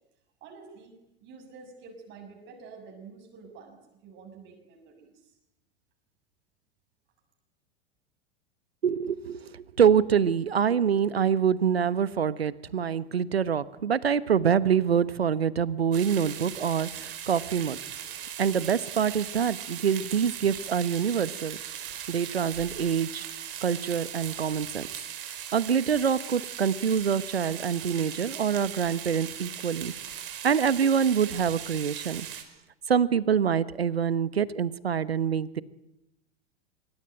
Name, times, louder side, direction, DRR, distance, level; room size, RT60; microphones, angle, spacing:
voice 1, 0.4-5.3, right 4 dB, 35° right, 3 dB, 6.7 m, -49 dB
voice 2, 8.8-17.8 18.4-21.6 22.1-23.3 23.6-24.8 25.5-29.9 30.4-32.3 32.9-35.6, right 7 dB, 75° right, 17 dB, 1.3 m, -25 dB
sound 1, 15.9-32.4, right 10 dB, 55° right, 4.9 m, -39 dB
25.5 x 24.0 x 9.2 m, 0.89 s
figure-of-eight pair, 90°, 31 cm